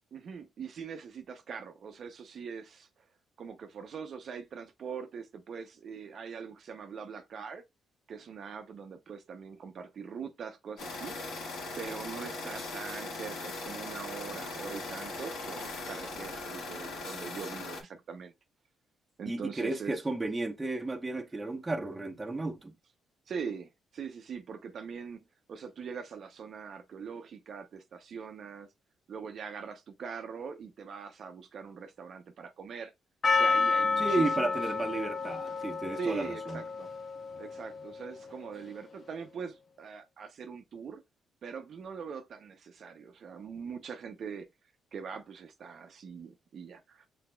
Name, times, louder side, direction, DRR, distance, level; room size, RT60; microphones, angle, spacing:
voice 1, 0.1-3.1 3.4-7.6 8.1-18.3 19.2-20.0 23.3-25.2 25.5-28.7 29.1-32.9 33.4-34.6 36.0-36.9 37.4-41.0 41.4-44.5 44.9-47.1, right 6 dB, 55° right, 0.6 m, -42 dB
sound 1, 10.8-17.8, left 3 dB, 80° left, 1.6 m, -39 dB
voice 2, 19.3-22.7 34.0-36.6, right 2 dB, 15° right, 0.8 m, -33 dB
Percussion, 33.2-38.2, left 4 dB, 45° left, 0.6 m, -30 dB
6.0 x 3.4 x 2.2 m
cardioid pair, 90°, 0 cm